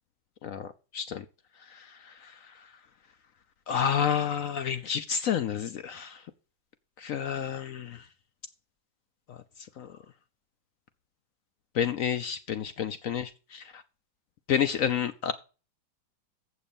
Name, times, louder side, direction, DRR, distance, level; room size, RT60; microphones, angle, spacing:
voice 1, 0.9-1.2 1.7-2.3 3.7-6.2 7.0-8.0 9.3-9.4 9.8-9.9 11.7-13.8 14.5-15.3, left 8 dB, 70° left, 0.8 m, -30 dB
7.6 x 6.9 x 7.1 m
omnidirectional pair, 2.0 m